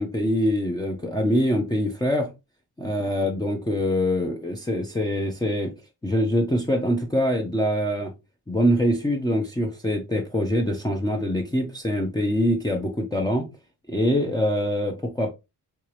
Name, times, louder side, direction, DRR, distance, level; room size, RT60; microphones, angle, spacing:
voice 1, 0.0-2.3 2.8-5.7 6.0-8.1 8.5-13.5 13.9-15.3, equal, 10° left, 0.7 m, -24 dB
4.5 x 2.4 x 3.1 m
cardioid pair, 85°, 41 cm